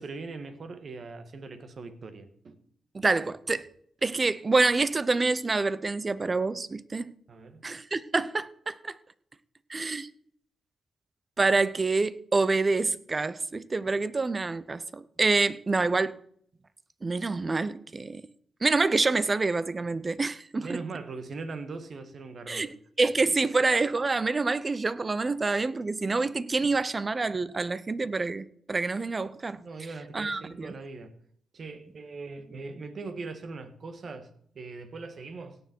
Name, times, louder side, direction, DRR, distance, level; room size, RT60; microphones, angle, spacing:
voice 1, 0.0-2.6 7.3-7.6 20.5-22.7 23.3-23.4 29.6-31.2 31.5-34.3 34.5-35.6, right 3 dB, 55° right, 1.6 m, -40 dB
voice 2, 2.9-3.6 4.0-7.1 7.6-9.0 9.7-10.1 11.4-16.2 17.0-18.2 18.6-20.8 22.5-29.6 30.1-30.7, right 3 dB, 30° right, 0.7 m, -27 dB
17.0 x 7.0 x 4.5 m
cardioid pair, 75°, 0 cm